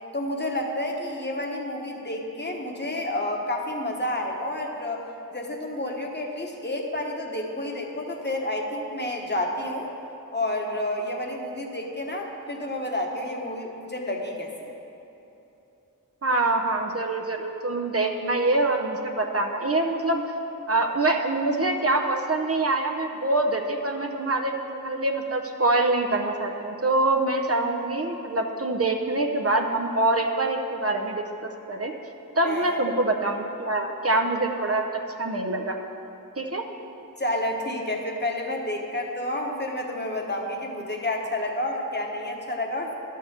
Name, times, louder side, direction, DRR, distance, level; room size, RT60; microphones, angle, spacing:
voice 1, 0.1-5.0 5.3-9.9 10.3-14.7 32.4-32.6 37.2-42.9, left 1 dB, 30° left, 1 dB, 1.2 m, -30 dB
voice 2, 16.2-20.2 20.7-31.9 32.4-34.9 35.2-35.8 36.4-36.6, right 2 dB, 45° right, 3 dB, 0.7 m, -25 dB
11.0 x 4.6 x 6.8 m, 2.9 s
wide cardioid pair, 55°, 34 cm